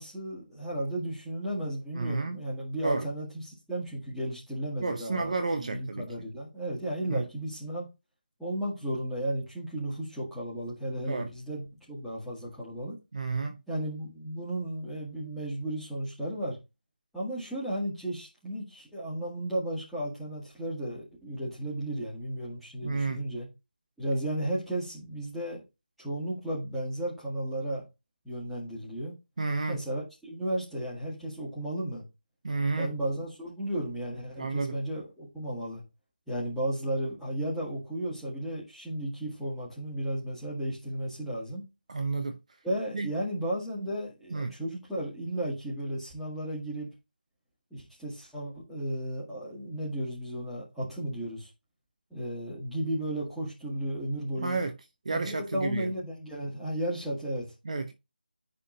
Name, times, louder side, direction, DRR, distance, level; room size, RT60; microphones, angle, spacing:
voice 1, 0.0-5.3 5.6-7.9 8.4-13.0 13.7-16.6 17.1-23.5 24.0-25.6 26.0-27.8 28.2-29.1 29.7-32.0 32.8-35.8 36.3-41.6 42.6-46.9 47.7-51.5 52.1-54.6 55.1-57.5, right 1 dB, ahead, 1.9 m, -34 dB
voice 2, 2.0-2.4 2.8-3.0 4.8-6.1 7.1-7.2 11.1-11.3 13.1-13.6 22.8-23.2 29.4-29.8 32.4-32.9 34.4-34.8 41.9-42.4 42.9-43.1 44.3-44.5 54.4-54.7 55.0-55.9 57.6-57.9, right 3 dB, 40° right, 0.8 m, -31 dB
10.0 x 3.7 x 3.8 m
figure-of-eight pair, 165°, 5 cm